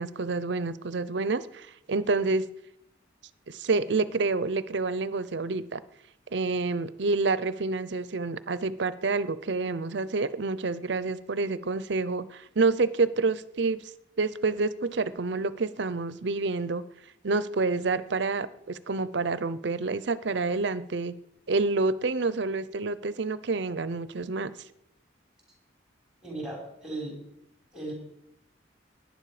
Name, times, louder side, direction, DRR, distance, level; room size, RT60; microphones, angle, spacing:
voice 1, 0.0-2.5 3.5-5.8 6.3-13.8 14.2-16.8 17.2-21.2 21.5-24.5, right 3 dB, 70° right, 16 dB, 0.6 m, -28 dB
voice 2, 26.2-27.2 27.7-27.9, right 2 dB, 5° right, -1 dB, 5.1 m, -36 dB
18.0 x 10.5 x 4.9 m, 0.80 s
head